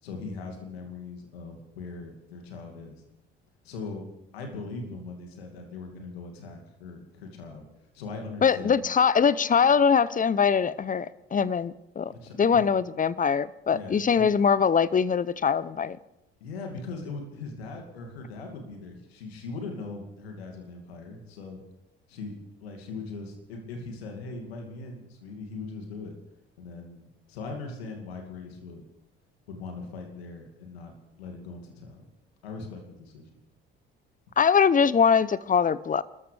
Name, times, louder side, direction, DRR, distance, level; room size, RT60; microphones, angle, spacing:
voice 1, 0.0-3.0 3.6-4.1 4.3-7.6 7.9-8.8 12.1-12.7 13.7-14.3 16.4-21.6 22.1-22.3 22.6-26.1 26.6-28.9 29.5-32.1 32.4-33.4, left 3 dB, 80° left, 2.5 m, -40 dB
voice 2, 8.4-12.1 12.4-16.0 34.4-36.0, left 6 dB, 25° left, 0.7 m, -22 dB
28.5 x 13.5 x 3.4 m
hypercardioid pair, 55°, 30 cm